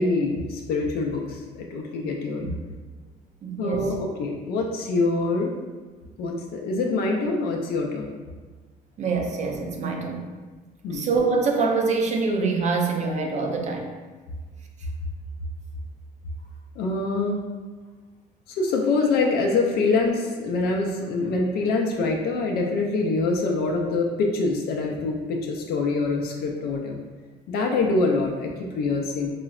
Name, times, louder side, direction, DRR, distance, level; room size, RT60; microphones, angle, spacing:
voice 1, 0.0-2.5 3.6-5.5 6.2-8.1 10.8-11.1 16.8-17.4 18.6-27.0 27.5-29.3, left 3 dB, 70° left, 0 dB, 0.4 m, -25 dB
voice 2, 3.4-3.9 9.0-10.3 10.9-13.9, right 4 dB, 45° right, 1 dB, 0.4 m, -25 dB
3.8 x 2.0 x 2.3 m, 1.4 s
cardioid pair, 110°, 17 cm